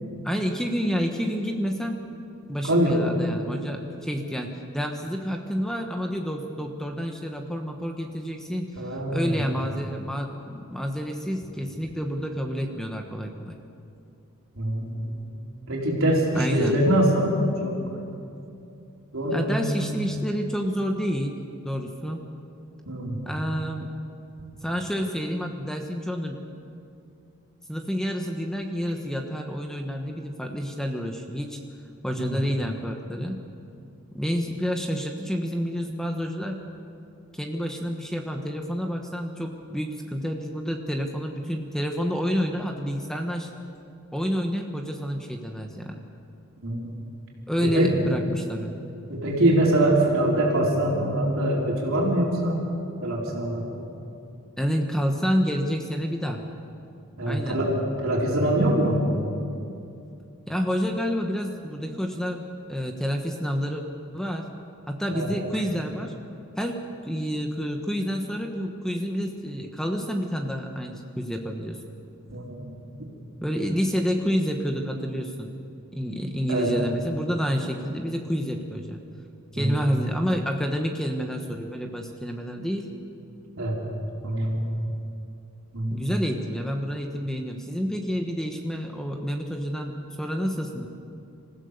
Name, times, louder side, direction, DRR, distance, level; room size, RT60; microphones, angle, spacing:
voice 1, 0.2-2.0 2.5-8.7 9.1-13.6 16.3-16.8 19.3-21.4 21.6-22.2 23.2-23.9 24.6-26.4 27.7-31.6 32.0-33.4 34.1-36.6 37.3-43.5 44.1-46.0 47.5-48.9 54.6-56.4 57.3-57.6 60.5-62.4 62.7-63.8 64.1-64.5 64.9-66.1 66.6-71.8 73.4-75.5 75.9-79.0 79.5-82.9 85.9-89.9 90.2-90.9, equal, ahead, 3 dB, 1.2 m, -29 dB
voice 2, 2.6-3.0 8.8-9.4 14.5-15.1 15.7-17.3 17.6-17.7 19.1-19.9 22.9-23.2 32.2-32.4 46.6-46.9 47.6-47.9 49.1-52.7 53.0-53.7 57.2-57.7 58.0-59.1 65.1-65.3 72.3-72.7 76.5-76.7 79.5-79.9 83.6-83.8 84.2-84.6 85.7-86.1, right 1 dB, 65° right, -3 dB, 4.2 m, -24 dB
26.5 x 15.5 x 6.7 m, 2.6 s
head